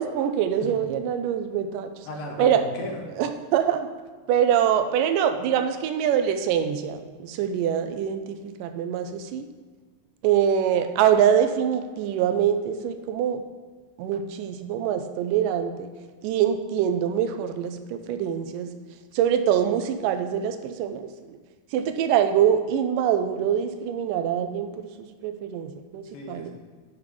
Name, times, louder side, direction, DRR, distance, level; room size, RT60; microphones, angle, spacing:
voice 1, 0.0-2.1 2.4-2.6 3.2-3.9 4.3-9.5 10.2-13.4 14.0-15.9 16.2-18.7 19.1-21.4 21.7-26.5, right 9 dB, 80° right, 8 dB, 2.1 m, -24 dB
voice 2, 2.1-3.0 26.1-26.5, left 2 dB, 80° left, 1 dB, 2.7 m, -35 dB
7.2 x 5.9 x 5.0 m, 1.5 s
omnidirectional pair, 4.0 m